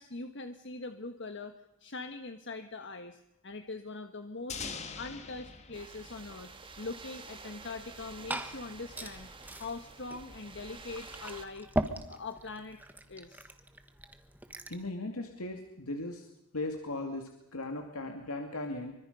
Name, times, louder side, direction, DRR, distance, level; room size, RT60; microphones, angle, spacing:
voice 1, 0.0-1.5 1.8-4.6 5.0-6.5 6.8-9.3 9.6-11.7 12.1-12.8 13.1-13.5, left 3 dB, 55° left, 7 dB, 1.4 m, -42 dB
sound 1, 4.5-7.3, left 5 dB, 30° left, 1.9 m, -43 dB
sound 2, 5.7-11.5, right 4 dB, 25° right, 1.9 m, -49 dB
Liquid, 7.8-14.9, right 1 dB, 10° right, 1.4 m, -40 dB
voice 2, 14.7-16.3 16.5-18.9, left 2 dB, 70° left, 3 dB, 2.4 m, -37 dB
26.5 x 24.5 x 5.4 m, 0.87 s
head